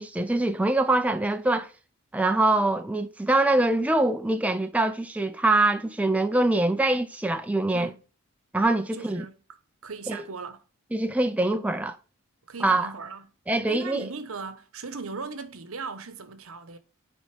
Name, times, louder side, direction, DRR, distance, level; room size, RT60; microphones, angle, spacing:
voice 1, 0.0-1.7 2.1-7.9 8.5-9.2 10.1-10.2 10.9-12.0 12.6-12.9 13.5-14.1, right 2 dB, 5° right, 0.4 m, -24 dB
voice 2, 8.9-9.4 9.8-10.6 12.5-13.2 13.7-16.8, right 4 dB, 75° right, 1.0 m, -38 dB
10.0 x 4.1 x 3.4 m
head